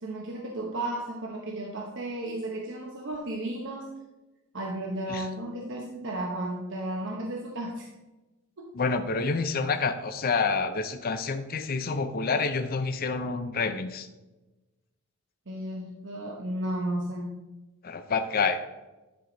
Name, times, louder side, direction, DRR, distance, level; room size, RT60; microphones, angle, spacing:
voice 1, 0.0-3.9 4.5-7.9 8.6-8.7 15.5-17.4, right 1 dB, 55° right, -1 dB, 0.9 m, -34 dB
voice 2, 8.7-14.1 17.8-18.6, left 4 dB, 45° left, 8 dB, 0.5 m, -28 dB
10.5 x 4.9 x 3.9 m, 1.1 s
head